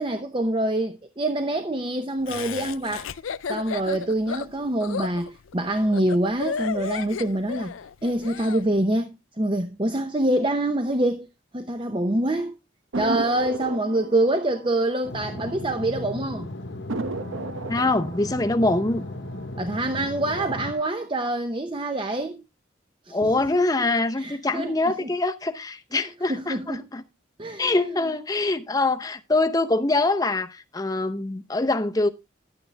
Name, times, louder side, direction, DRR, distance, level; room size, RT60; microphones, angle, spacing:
voice 1, 0.0-3.1 3.5-7.7 8.0-11.3 11.5-12.5 13.0-16.5 19.6-22.4 23.1-23.3 24.2-24.7 25.0-25.1 26.3-26.9 27.4-27.9, right 1 dB, 25° right, 0.7 m, -25 dB
Laughter, 2.3-8.6, left 6 dB, 85° left, 0.5 m, -33 dB
sound 1, 12.9-16.0 16.3-16.4 16.9-19.8 20.2-20.9, right 3 dB, 90° right, 0.9 m, -35 dB
sound 2, 15.0-20.7, left 1 dB, 65° left, 1.1 m, -36 dB
voice 2, 17.7-19.1 23.1-27.0 27.6-32.1, left 2 dB, 20° left, 0.7 m, -24 dB
11.5 x 8.8 x 3.3 m
head